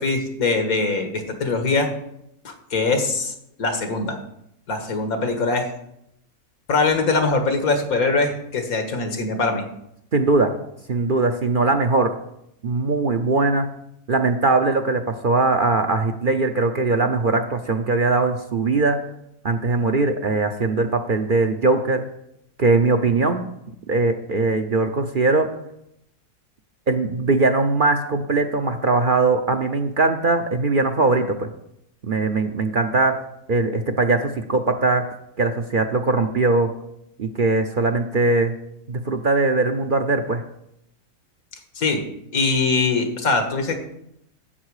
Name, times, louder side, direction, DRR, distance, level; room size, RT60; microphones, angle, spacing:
voice 1, 0.0-1.9 2.4-3.3 3.6-4.2 4.7-5.7 6.7-9.6 41.8-42.0 42.3-43.8, left 3 dB, 85° left, 5 dB, 2.0 m, -22 dB
voice 2, 10.1-10.6 10.9-12.2 12.6-13.7 14.1-19.0 19.4-22.0 22.6-23.5 23.9-25.5 26.9-31.5 32.0-33.2 33.5-35.1 35.4-36.7 37.2-38.6 38.9-40.4, right 3 dB, 50° right, 6 dB, 0.7 m, -20 dB
11.5 x 8.0 x 4.8 m, 0.78 s
omnidirectional pair, 1.5 m